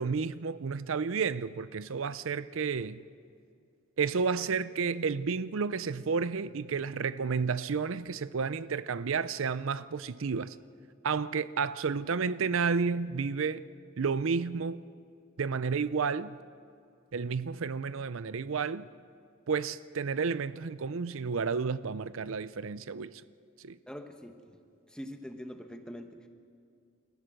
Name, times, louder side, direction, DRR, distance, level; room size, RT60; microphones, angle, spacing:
voice 1, 0.0-3.0 4.0-10.6 11.0-13.6 14.0-14.8 15.4-16.4 17.1-18.8 19.5-23.1 23.6-23.8, right 5 dB, 70° right, 15 dB, 0.5 m, -31 dB
voice 2, 23.9-24.6 24.9-26.3, equal, 5° left, 5 dB, 1.2 m, -44 dB
29.0 x 14.5 x 6.5 m, 2.4 s
head